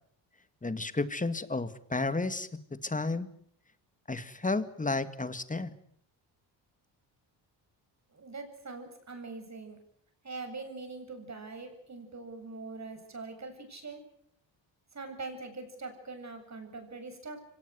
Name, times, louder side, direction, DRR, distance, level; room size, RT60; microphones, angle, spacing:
voice 1, 0.6-2.5 2.8-3.3 4.1-5.7, left 3 dB, 15° left, 13 dB, 2.1 m, -32 dB
voice 2, 8.1-9.8 10.2-14.0 14.9-17.4, right 3 dB, 35° right, 6 dB, 7.6 m, -43 dB
25.0 x 18.5 x 9.5 m, 0.68 s
cardioid pair, 80°, 47 cm